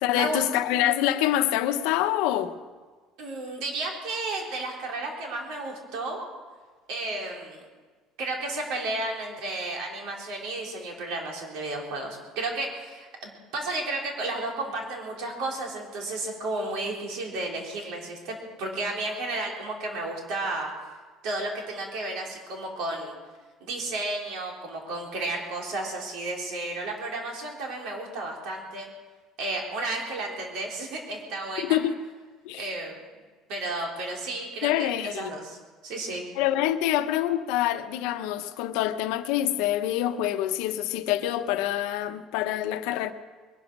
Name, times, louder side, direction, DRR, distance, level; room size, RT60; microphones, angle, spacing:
voice 1, 0.0-2.6 31.6-31.9 32.4-32.7 34.6-35.3 36.4-43.1, left 12 dB, 85° left, 9 dB, 1.0 m, -26 dB
voice 2, 3.2-6.2 6.9-7.6 8.2-20.7 21.2-23.1 23.6-28.9 29.4-31.8 32.5-33.0 33.5-35.6 35.8-36.3, right 2 dB, 65° right, 0 dB, 3.8 m, -32 dB
21.5 x 10.5 x 6.2 m, 1.4 s
cardioid pair, 175°, 0 cm